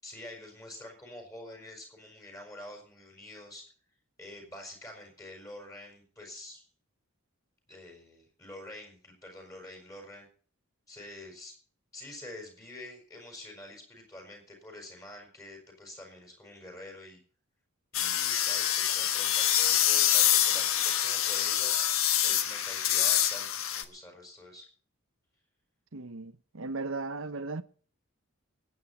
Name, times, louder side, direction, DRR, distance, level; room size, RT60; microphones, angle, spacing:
voice 1, 0.0-3.6 4.2-6.7 7.7-10.3 10.9-11.5 11.9-17.2 17.9-21.7 22.2-24.7, left 1 dB, 15° left, 6.0 m, -47 dB
sound 1, 17.9-23.8, left 11 dB, 70° left, 1.4 m, -26 dB
voice 2, 25.9-27.6, right 3 dB, 65° right, 1.0 m, -36 dB
24.0 x 9.6 x 4.3 m
head